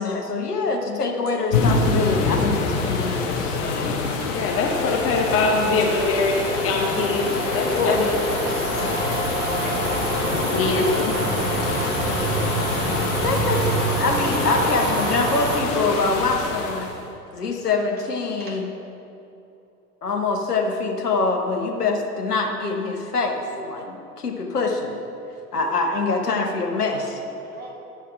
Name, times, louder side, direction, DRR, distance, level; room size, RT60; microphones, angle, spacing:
voice 1, 0.0-4.1 4.7-4.8 7.7-8.0 8.6-8.9 13.2-13.7 13.9-16.9 17.3-18.7 20.0-25.0 25.5-27.0, left 3 dB, 80° left, 2 dB, 1.1 m, -25 dB
sound 1, 1.5-17.0, left 4 dB, 55° left, 1.4 m, -26 dB
voice 2, 4.3-8.3 10.4-11.1, left 3 dB, 30° left, 1 dB, 1.1 m, -23 dB
sound 2, 4.9-15.6, right 2 dB, 65° right, 1.9 m, -27 dB
voice 3, 9.5-10.5 18.4-18.6 26.9-27.0 27.4-27.7, right 1 dB, 20° right, -2 dB, 2.0 m, -42 dB
11.0 x 5.9 x 4.6 m, 2.7 s
figure-of-eight pair, 85°, 46 cm